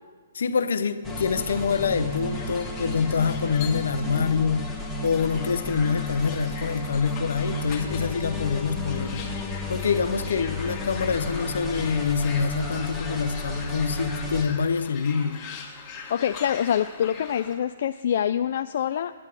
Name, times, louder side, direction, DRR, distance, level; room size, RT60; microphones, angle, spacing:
voice 1, 0.3-4.8 5.0-9.2 9.7-15.5, left 6 dB, 75° left, 11 dB, 0.7 m, -26 dB
sound 1, 1.0-14.4, left 1 dB, ahead, 1.3 m, -33 dB
sound 2, 2.1-17.6, left 5 dB, 25° left, 1.6 m, -42 dB
voice 2, 16.1-19.1, left 9 dB, 55° left, 9 dB, 0.3 m, -25 dB
9.6 x 7.5 x 7.4 m, 1.5 s
hypercardioid pair, 150°, 0 cm